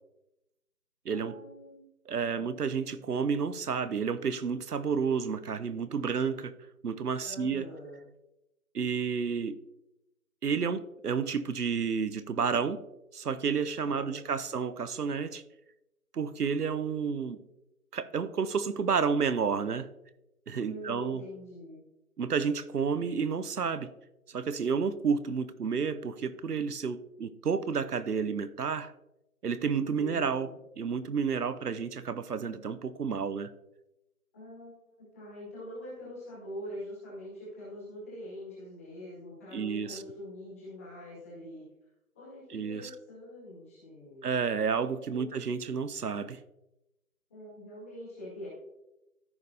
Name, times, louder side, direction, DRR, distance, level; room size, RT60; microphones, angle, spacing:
voice 1, 1.1-1.9 2.2-2.6 7.2-8.0 13.9-14.2 20.7-21.8 29.9-30.6 34.3-41.6 42.1-44.3 45.1-45.3 47.3-48.5, left 1 dB, 10° left, -8 dB, 1.8 m, -44 dB
voice 2, 2.1-6.5 6.8-7.6 8.7-9.6 10.4-12.8 13.1-15.4 16.1-17.4 17.9-19.9 20.5-21.2 22.2-23.9 24.3-28.9 29.4-30.5 30.8-33.5 39.5-40.0 42.5-42.9 44.2-46.4, right 6 dB, 85° right, 13 dB, 0.8 m, -30 dB
14.0 x 5.4 x 2.7 m, 0.91 s
figure-of-eight pair, 170°, 45 cm